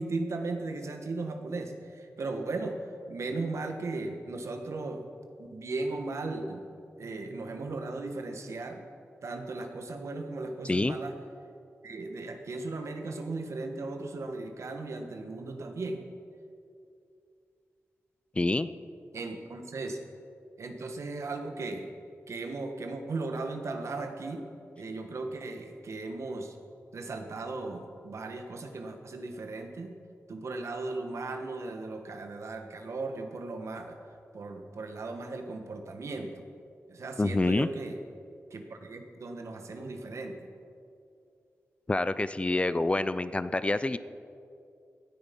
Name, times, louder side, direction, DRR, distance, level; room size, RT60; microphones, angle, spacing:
voice 1, 0.0-2.8 3.1-5.1 5.4-6.6 7.0-8.8 9.2-11.1 11.8-16.0 19.1-20.0 20.6-21.9 22.3-24.4 24.8-26.5 26.9-29.9 30.3-34.0 34.3-36.4 36.9-38.0 38.5-40.4, right 3 dB, 70° right, 5 dB, 1.5 m, -37 dB
voice 2, 10.6-11.0 18.4-18.7 37.2-37.7 41.9-44.0, left 2 dB, 25° left, 13 dB, 0.5 m, -27 dB
17.0 x 10.0 x 5.4 m, 2.5 s
wide cardioid pair, 90°, 5 cm